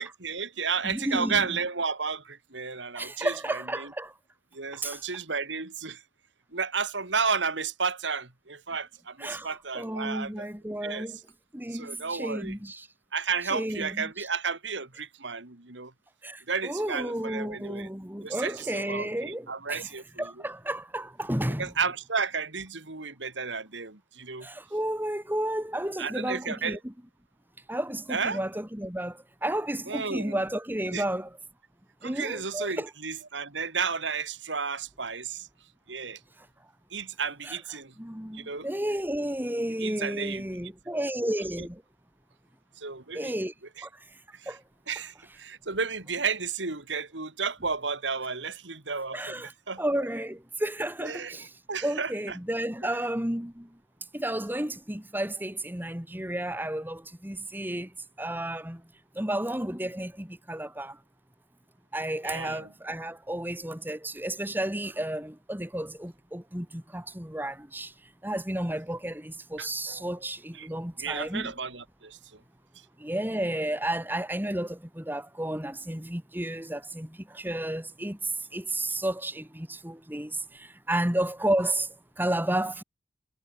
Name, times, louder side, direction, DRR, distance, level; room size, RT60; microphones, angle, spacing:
voice 1, 0.0-3.9 4.5-6.0 6.5-10.5 10.8-11.1 11.7-12.5 13.1-15.9 16.5-17.9 18.2-20.3 21.6-24.5 26.0-26.8 28.1-28.4 29.9-30.4 30.9-31.0 32.0-35.5 35.9-36.2 36.9-37.9 38.3-38.7 39.8-40.4 42.8-43.3 43.8-43.9 44.3-44.5 44.9-50.1 51.0-52.4 52.8-53.0 62.2-62.7 69.6-70.1 70.5-70.7 71.0-72.4, right 5 dB, 85° right, 2.6 m, -33 dB
voice 2, 0.8-1.5 2.9-4.1 4.7-5.0 9.2-11.2 11.5-12.9 13.5-14.3 16.2-19.9 20.2-21.7 24.4-26.9 27.7-31.3 32.0-32.9 37.4-37.6 38.0-41.8 43.1-43.5 43.8-44.0 44.5-44.6 49.1-49.5 49.8-51.5 51.8-53.8 54.1-58.9 59.1-61.0 61.9-67.9 68.2-71.5 73.0-82.8, right 1 dB, 10° right, 2.8 m, -32 dB
head